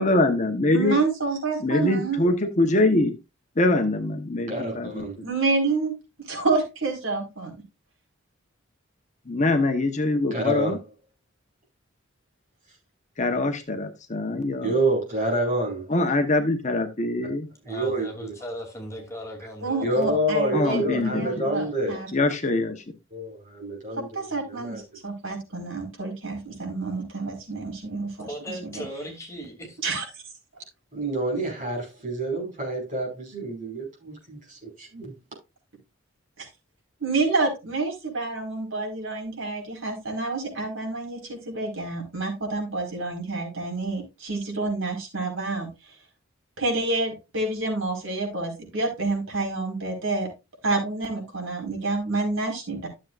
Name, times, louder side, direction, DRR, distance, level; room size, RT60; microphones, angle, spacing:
voice 1, 0.0-1.0 1.6-3.2 3.6-5.1 9.3-10.8 13.2-14.7 15.9-17.5 20.5-21.4 22.1-22.8, left 2 dB, 35° left, 1.1 m, -23 dB
voice 2, 0.7-2.2 5.2-5.9 6.3-7.5 19.6-22.1 24.0-28.3 28.6-28.7 29.8-30.0 36.4-36.5 37.0-45.7 46.6-50.3 50.6-52.9, right 3 dB, 85° right, 4.7 m, -28 dB
voice 3, 4.5-5.1 10.3-10.8 14.6-15.8 17.6-18.3 19.8-22.0 23.1-24.8 30.9-35.1, right 1 dB, 40° right, 5.5 m, -28 dB
voice 4, 17.7-20.2 28.2-29.8, equal, 15° left, 2.9 m, -38 dB
13.0 x 7.4 x 2.5 m
head